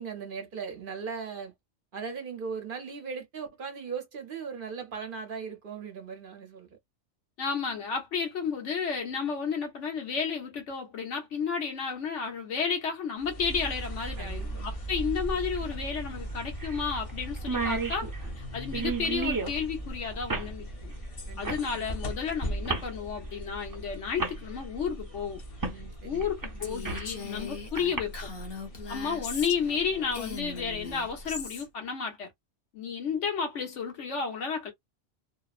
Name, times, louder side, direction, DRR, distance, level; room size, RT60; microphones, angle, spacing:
voice 1, 0.0-1.5 1.9-6.8 14.2-14.7 21.3-21.9 25.7-26.7, right 5 dB, 50° right, 0.8 m, -39 dB
voice 2, 7.4-18.1 18.4-20.9 21.4-25.4 26.0-28.3 28.9-32.3 32.7-34.7, left 6 dB, 80° left, 1.3 m, -32 dB
sound 1, 13.2-31.6, right 1 dB, 35° left, 0.6 m, -39 dB
sound 2, 13.6-13.7 15.5-15.6 16.0-16.1 16.6-16.8 17.1-17.2 17.4-19.6 20.3-20.5 21.4-21.7 22.6-22.9 23.7-23.8 24.2-24.4 25.6-25.8 26.2-27.1 27.8-28.0, right 4 dB, 25° right, 0.4 m, -32 dB
Female speech woman speaking, 26.6-29.8 30.1-31.7, left 4 dB, 55° left, 1.0 m, -39 dB
2.8 x 2.0 x 2.3 m
omnidirectional pair, 1.2 m